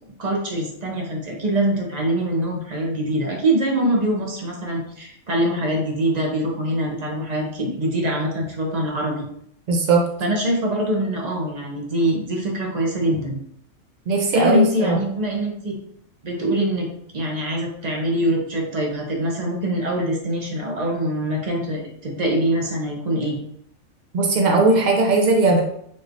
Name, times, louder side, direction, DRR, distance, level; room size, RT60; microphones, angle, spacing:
voice 1, 0.2-9.3 10.2-13.4 14.3-15.8 16.2-16.9 17.1-23.4, right 1 dB, 35° right, -1 dB, 0.8 m, -23 dB
voice 2, 9.7-10.1 14.1-15.0 24.1-25.6, right 3 dB, 75° right, 1 dB, 0.4 m, -18 dB
3.9 x 3.0 x 2.5 m, 0.69 s
omnidirectional pair, 1.4 m